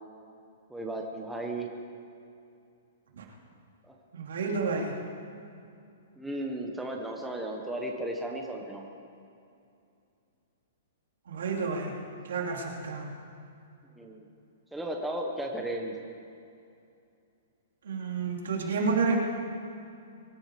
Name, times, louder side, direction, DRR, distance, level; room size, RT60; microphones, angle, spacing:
voice 1, 0.7-1.7 3.9-4.0 6.2-8.9 14.0-14.2 14.7-15.9, right 1 dB, 5° right, 0 dB, 0.9 m, -35 dB
voice 2, 4.1-4.9 11.3-12.0 12.3-13.2 17.8-19.2, right 4 dB, 85° right, 0 dB, 3.1 m, -30 dB
23.0 x 11.5 x 4.9 m, 2.5 s
hypercardioid pair, 175°, 0 cm